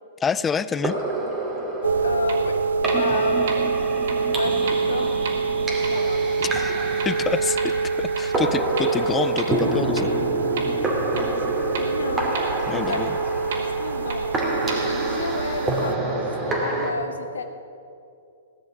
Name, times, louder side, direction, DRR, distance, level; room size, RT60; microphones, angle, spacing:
voice 1, 0.2-1.0 6.4-6.8 7.1-10.1 12.7-13.1, left 6 dB, 15° left, 17 dB, 0.3 m, -27 dB
sound 1, 0.7-16.9, right 2 dB, 15° right, 2.2 m, -28 dB
sound 2, 1.8-16.0, right 4 dB, 85° right, 0.4 m, -25 dB
voice 2, 2.0-5.5 5.9-6.3 11.1-12.4 12.7-13.3 13.5-17.4, left 3 dB, 85° left, 7 dB, 1.4 m, -33 dB
sound 3, 2.3-2.4 2.9-3.0 3.5-3.6 4.1-4.2 4.7-4.8 5.2-5.3 5.8-5.9 6.4-6.5 7.0-7.1 7.6-7.7 8.2-8.3 8.8-8.9 9.4-9.5 10.0-10.1 10.6-10.7 11.2-11.3 11.7-11.8 12.3-12.4 12.9-13.0 13.5-13.6 14.1-14.2 14.7-14.8, right 6 dB, 65° right, 3.0 m, -32 dB
16.0 x 6.5 x 9.0 m, 2.5 s
hypercardioid pair, 135°, 0 cm